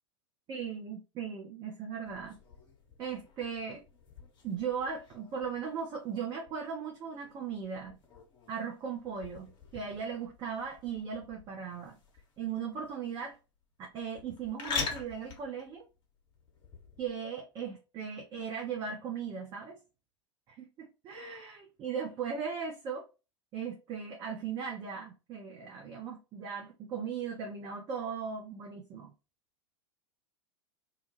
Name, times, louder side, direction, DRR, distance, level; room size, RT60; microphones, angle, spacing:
voice 1, 0.5-2.4 3.0-3.8 4.4-8.0 8.5-12.0 12.4-13.4 13.8-15.9 17.0-19.8 20.5-23.0 23.5-29.1, right 6 dB, 30° right, 0.5 m, -38 dB
sound 1, 2.0-17.1, left 5 dB, 30° left, 0.8 m, -45 dB
2.3 x 2.1 x 3.0 m
figure-of-eight pair, 90°, 15 cm